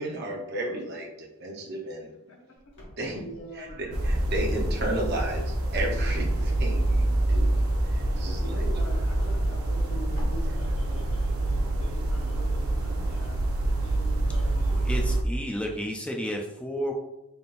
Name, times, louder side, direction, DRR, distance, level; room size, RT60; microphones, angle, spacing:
voice 1, 0.0-2.1 3.0-3.2 3.6-7.5 7.9-8.7, right 1 dB, 50° right, -1 dB, 0.8 m, -33 dB
Wind / Car, 2.7-8.5 8.8-11.3, equal, 60° left, 1.3 m, -39 dB
voice 2, 3.1-4.1 8.1-13.4 13.8-14.9 15.2-15.6, equal, 85° left, 1 dB, 0.8 m, -44 dB
sound 1, 3.9-15.2, right 1 dB, 85° right, 0.6 m, -26 dB
voice 3, 14.7-16.9, equal, 5° left, 2 dB, 0.3 m, -32 dB
4.1 x 3.5 x 2.5 m, 0.93 s
head